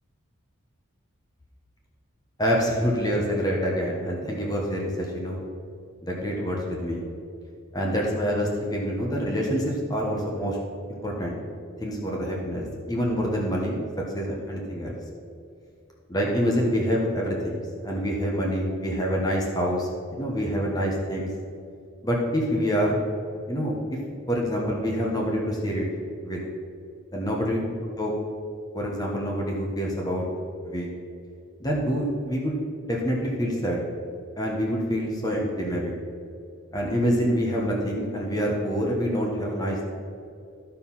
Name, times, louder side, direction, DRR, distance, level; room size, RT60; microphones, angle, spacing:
voice 1, 2.4-5.4 6.0-7.0 7.7-10.6 10.9-11.4 11.8-13.8 14.1-14.9 16.1-21.3 22.0-23.0 23.5-24.0 24.3-25.8 26.2-26.4 27.1-27.6 28.0-28.1 28.7-30.2 30.6-30.9 31.6-32.5 32.8-33.8 34.4-36.0 36.7-39.8, equal, 20° left, -2 dB, 1.1 m, -26 dB
13.0 x 4.6 x 5.5 m, 2.5 s
head